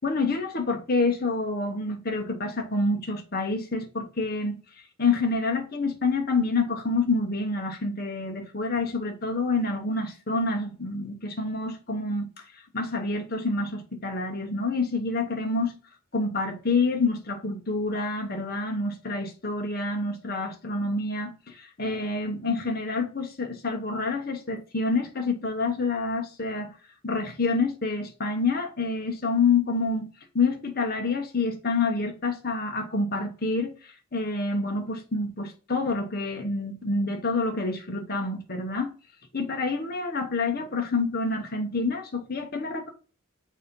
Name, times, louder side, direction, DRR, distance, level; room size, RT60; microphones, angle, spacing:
voice 1, 0.0-4.6 5.0-12.3 12.7-15.7 16.1-26.7 27.0-30.1 30.3-38.9 39.3-42.9, left 3 dB, 45° left, 1.1 m, -27 dB
6.4 x 2.8 x 5.3 m
head